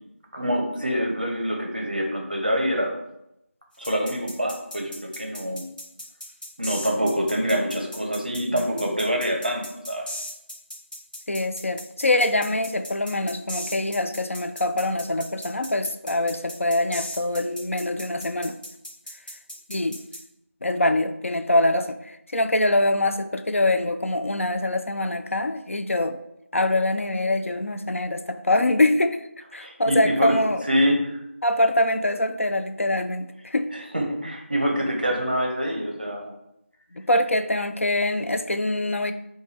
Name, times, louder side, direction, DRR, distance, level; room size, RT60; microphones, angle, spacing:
voice 1, 0.3-2.9 3.8-5.6 6.6-10.1 29.5-30.3 30.6-31.2 33.7-36.3, equal, 40° right, 1 dB, 0.6 m, -25 dB
sound 1, 3.8-20.2, equal, 40° left, 0.8 m, -37 dB
voice 2, 11.3-18.5 19.7-20.0 20.6-26.2 26.5-29.2 29.5-30.6 31.4-33.7 37.0-39.1, left 1 dB, 70° left, 8 dB, 0.4 m, -24 dB
4.6 x 2.2 x 3.1 m, 0.81 s
figure-of-eight pair, 180°, 7 cm